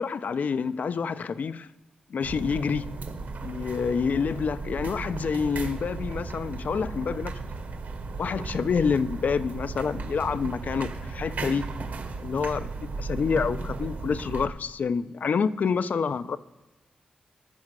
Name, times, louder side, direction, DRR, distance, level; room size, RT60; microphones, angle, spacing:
voice 1, 0.0-1.7 2.1-2.9 3.4-7.3 8.2-11.7 12.2-16.4, left 5 dB, 65° left, 0.8 m, -28 dB
sound 1, 2.2-14.5, right 3 dB, 70° right, 2.2 m, -35 dB
14.0 x 7.2 x 6.5 m
supercardioid pair, 40°, 3 cm